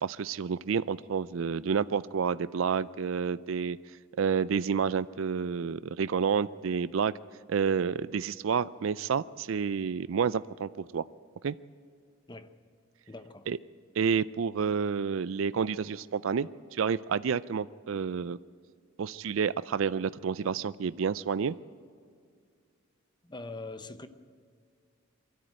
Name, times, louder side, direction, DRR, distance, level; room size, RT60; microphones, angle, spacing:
voice 1, 0.0-3.8 4.2-7.1 7.5-11.0 11.4-11.6 13.5-13.6 14.0-18.4 19.0-21.5, right 6 dB, 70° right, 0.4 m, -29 dB
voice 2, 13.1-13.5 23.2-24.1, left 2 dB, 20° left, 0.8 m, -42 dB
23.0 x 13.5 x 9.0 m
head